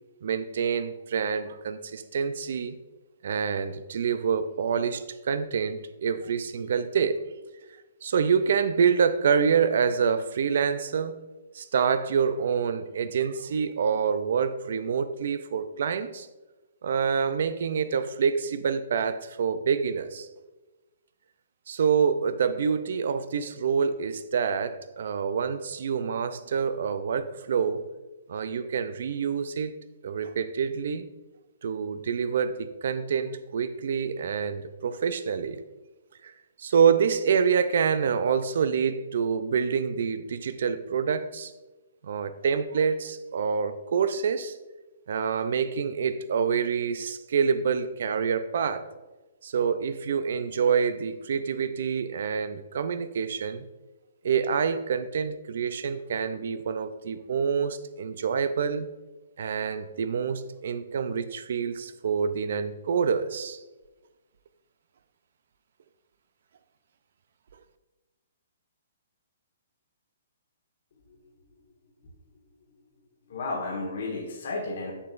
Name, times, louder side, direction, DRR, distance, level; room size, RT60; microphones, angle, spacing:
voice 1, 0.2-2.8 3.2-7.2 8.0-11.2 11.5-16.3 16.8-20.3 21.7-27.9 28.3-29.7 30.0-31.1 31.6-35.6 36.2-36.3 36.6-41.5 42.0-44.6 45.1-48.9 49.4-53.6 54.2-58.9 59.4-63.6, right 6 dB, 65° right, 12 dB, 0.5 m, -27 dB
voice 2, 73.3-74.9, left 3 dB, 60° left, -2 dB, 1.4 m, -32 dB
6.9 x 6.8 x 2.5 m, 1.1 s
hypercardioid pair, 155°, 0 cm